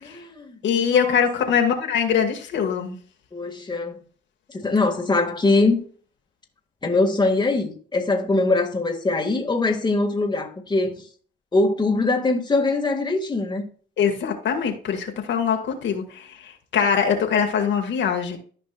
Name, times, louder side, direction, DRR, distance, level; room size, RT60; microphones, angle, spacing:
voice 1, 0.0-1.2 3.3-4.0 4.5-5.8 6.8-11.1 11.5-13.7, left 3 dB, 20° left, 1.9 m, -22 dB
voice 2, 0.6-3.0 14.0-18.4, left 7 dB, 70° left, 1.8 m, -23 dB
14.0 x 5.3 x 2.4 m
cardioid pair, 90°, 20 cm